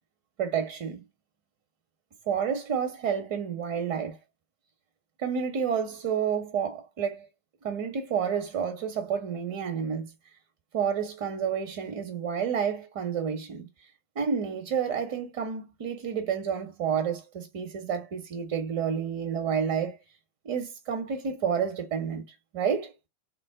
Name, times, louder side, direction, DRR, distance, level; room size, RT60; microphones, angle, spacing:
voice 1, 0.4-1.0 2.3-4.2 5.2-7.3 7.6-10.1 10.7-13.7 14.1-20.0 20.4-22.2 22.5-22.9, right 7 dB, 50° right, 0.8 m, -30 dB
3.8 x 2.1 x 3.6 m
figure-of-eight pair, 90°, 0 cm